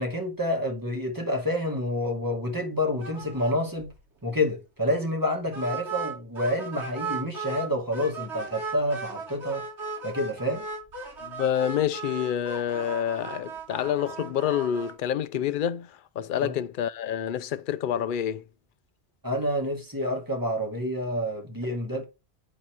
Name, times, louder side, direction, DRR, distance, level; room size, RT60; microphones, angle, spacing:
voice 1, 0.0-3.9 4.2-9.6 10.0-10.7 16.4-16.5 19.2-22.1, left 1 dB, 20° right, 2.1 m, -28 dB
sound 1, 3.0-3.5 3.8-3.9 4.3-4.4 5.5-7.7 7.9-14.9, right 4 dB, 85° right, 2.8 m, -36 dB
voice 2, 11.2-15.9 16.2-18.4, left 9 dB, 55° left, 0.7 m, -28 dB
8.8 x 4.1 x 4.5 m
omnidirectional pair, 1.1 m